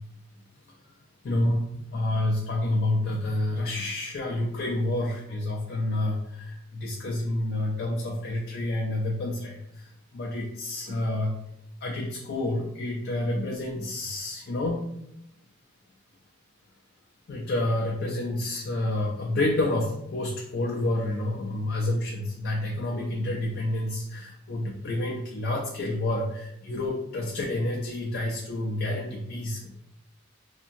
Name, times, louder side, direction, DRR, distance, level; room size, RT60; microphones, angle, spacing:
voice 1, 1.2-11.4 11.8-14.9 17.3-29.8, left 1 dB, 45° left, -1 dB, 0.3 m, -29 dB
2.7 x 2.6 x 2.5 m, 0.79 s
head